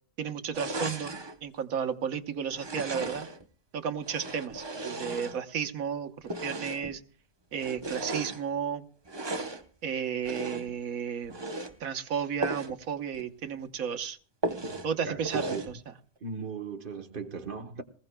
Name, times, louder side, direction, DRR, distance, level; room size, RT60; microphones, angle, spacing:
voice 1, 0.2-1.1 1.4-3.3 3.7-7.0 7.5-8.8 9.8-11.3 11.8-14.2 14.8-15.5, right 7 dB, 80° right, 1.4 m, -33 dB
sound 1, 0.5-1.4 2.5-3.4 4.0-5.7 6.2-7.0 7.5-8.4 9.0-9.7 10.2-10.8 11.2-11.7 12.4-12.8 13.1-13.2 13.6-13.7 14.4-14.9 15.2-15.7, right 2 dB, 25° right, 0.7 m, -36 dB
voice 2, 14.6-15.6 16.2-17.8, right 5 dB, 40° right, 1.1 m, -38 dB
21.5 x 20.0 x 2.2 m
omnidirectional pair, 1.5 m